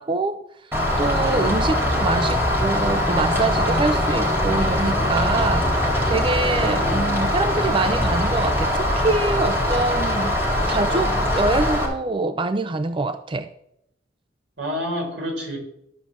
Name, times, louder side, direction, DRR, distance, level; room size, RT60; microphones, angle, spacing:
voice 1, 0.0-10.4 10.6-13.5, right 3 dB, 30° right, 11 dB, 0.4 m, -25 dB
Rain, 0.7-11.9, left 1 dB, 15° right, 3.5 m, -22 dB
voice 2, 1.2-1.5 6.5-7.1 14.6-15.6, left 1 dB, 80° right, 1 dB, 4.3 m, -29 dB
13.0 x 5.7 x 7.4 m, 0.80 s
head